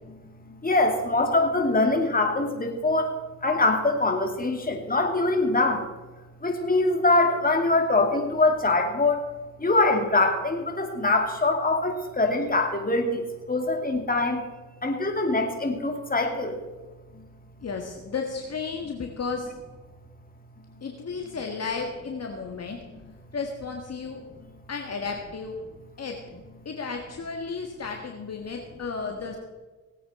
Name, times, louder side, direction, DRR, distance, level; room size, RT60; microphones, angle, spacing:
voice 1, 0.6-3.1 3.4-5.8 6.4-9.2 9.6-14.4 14.8-16.5, left 2 dB, 25° left, 3 dB, 2.6 m, -23 dB
voice 2, 17.6-19.5 20.8-22.8 23.3-24.2 24.7-25.5 26.0-26.2 26.6-29.4, left 5 dB, 50° left, 2 dB, 1.7 m, -33 dB
19.5 x 8.5 x 4.3 m, 1.3 s
cardioid pair, 75°, 32 cm